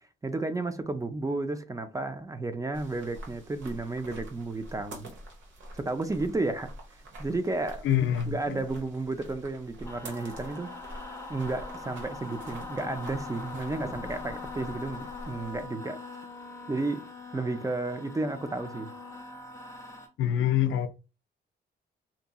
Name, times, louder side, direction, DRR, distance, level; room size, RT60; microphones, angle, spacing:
voice 1, 0.2-5.1 5.7-6.7 7.2-7.9 8.3-10.7 11.1-16.0 16.7-17.1 17.3-18.9, right 2 dB, 15° right, 0.4 m, -32 dB
sound 1, 2.7-15.7, right 1 dB, 70° right, 1.0 m, -46 dB
voice 2, 7.8-8.6 20.2-20.9, left 10 dB, 75° left, 0.4 m, -25 dB
sound 2, 9.8-20.1, left 3 dB, 15° left, 0.8 m, -42 dB
2.7 x 2.7 x 2.3 m
cardioid pair, 90°, 21 cm